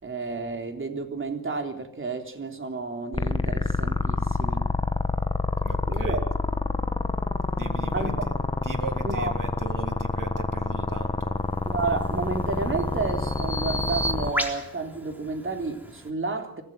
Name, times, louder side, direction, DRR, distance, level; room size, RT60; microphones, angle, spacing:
voice 1, 0.0-4.7 5.9-6.2 7.9-8.4 9.0-9.3 10.4-10.5 11.7-16.6, right 3 dB, 30° right, 5 dB, 3.6 m, -31 dB
sound 1, 3.1-14.3, left 2 dB, 15° left, 1.3 m, -27 dB
voice 2, 5.6-6.2 7.5-11.4, right 4 dB, 55° right, 6 dB, 3.6 m, -38 dB
Bird vocalization bird call bird song, 11.9-16.1, right 1 dB, 5° right, 3.8 m, -34 dB
24.5 x 15.5 x 9.3 m, 0.80 s
cardioid pair, 105°, 39 cm